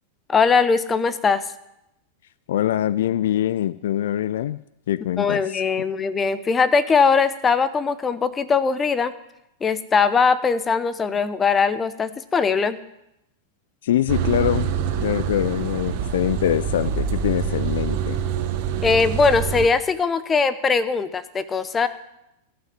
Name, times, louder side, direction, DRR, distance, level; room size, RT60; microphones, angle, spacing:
voice 1, 0.3-1.4 5.2-9.1 9.6-12.8 18.8-21.9, left 5 dB, 20° left, 14 dB, 0.9 m, -20 dB
voice 2, 2.5-4.6 4.9-5.6 13.8-14.7 15.0-18.2, left 11 dB, 75° left, 18 dB, 0.4 m, -23 dB
sound 1, 14.1-19.7, right 8 dB, 55° right, 1.4 m, -26 dB
14.5 x 5.9 x 9.3 m, 0.86 s
hypercardioid pair, 105°, 0 cm